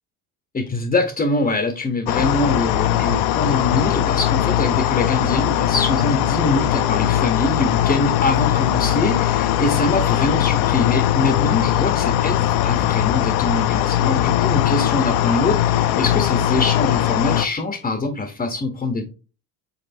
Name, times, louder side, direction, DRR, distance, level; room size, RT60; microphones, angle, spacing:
voice 1, 0.5-19.0, left 2 dB, 20° left, 7 dB, 0.7 m, -23 dB
sound 1, 2.1-17.5, left 12 dB, 65° left, 0.5 m, -20 dB
5.5 x 3.6 x 2.6 m, 0.33 s
supercardioid pair, 100°, 41 cm